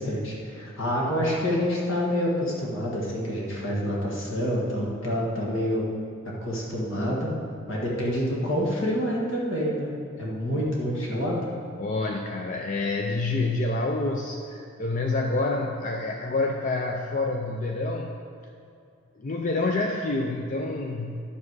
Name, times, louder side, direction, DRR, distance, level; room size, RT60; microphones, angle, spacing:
voice 1, 0.0-5.9 6.4-7.3 7.7-9.9 10.2-11.5, equal, 65° left, -3 dB, 1.7 m, -27 dB
voice 2, 11.8-18.2 19.2-21.2, left 2 dB, 40° left, 2 dB, 0.4 m, -27 dB
10.5 x 6.7 x 4.7 m, 2.4 s
head